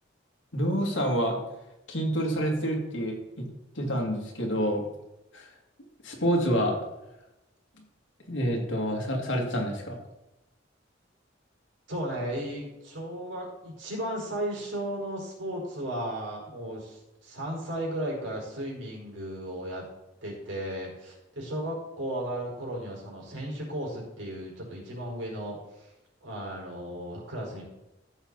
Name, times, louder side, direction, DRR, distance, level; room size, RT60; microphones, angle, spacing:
voice 1, 0.5-1.4 1.9-3.5 3.7-4.8 5.3-5.5 6.0-6.8 8.3-10.0, equal, 90° left, 0 dB, 2.6 m, -27 dB
voice 2, 11.9-19.8 20.2-25.9 26.2-27.6, right 1 dB, 80° right, -3 dB, 4.6 m, -35 dB
14.5 x 6.6 x 4.1 m, 0.92 s
head